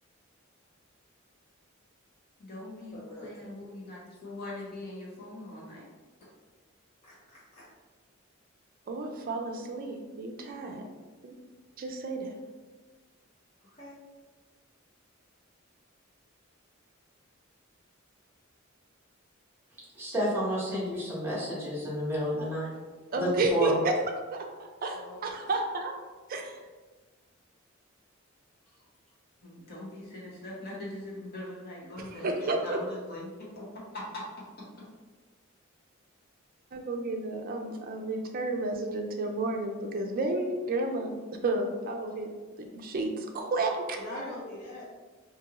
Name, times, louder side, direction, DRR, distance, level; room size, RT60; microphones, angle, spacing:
voice 1, 2.4-5.9 29.4-33.6 33.9-34.2, left 1 dB, 50° left, -5 dB, 0.9 m, -41 dB
voice 2, 2.9-3.3 3.6-3.7 7.0-7.6 13.7-14.0 24.9-25.2 44.0-44.9, left 1 dB, 35° left, -9 dB, 0.6 m, -43 dB
voice 3, 8.9-10.8 11.2-11.3 11.8-12.4 23.1-23.9 24.3-25.9 26.3-26.6 32.2-32.8 36.7-41.2 41.4-42.3 42.6-44.0, right 2 dB, 45° right, 3 dB, 0.4 m, -31 dB
voice 4, 19.9-22.7 23.2-23.7, equal, 10° right, -6 dB, 1.0 m, -30 dB
2.6 x 2.6 x 2.8 m, 1.3 s
head